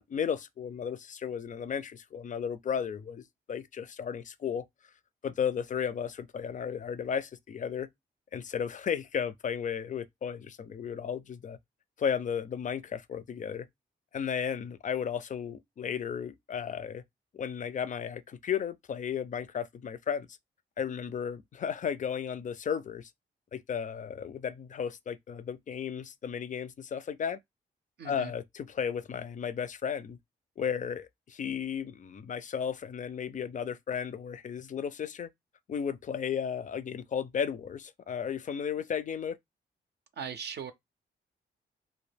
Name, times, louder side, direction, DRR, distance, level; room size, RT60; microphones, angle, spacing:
voice 1, 0.0-4.6 5.2-7.9 8.3-11.6 12.0-13.7 14.1-17.0 17.3-20.3 20.8-23.1 23.5-27.4 28.0-30.2 30.6-35.3 35.7-39.4, left 7 dB, 40° left, 0.4 m, -34 dB
voice 2, 28.0-28.3 40.2-40.7, right 7 dB, 60° right, 0.5 m, -39 dB
2.2 x 2.1 x 3.3 m
supercardioid pair, 50°, 20 cm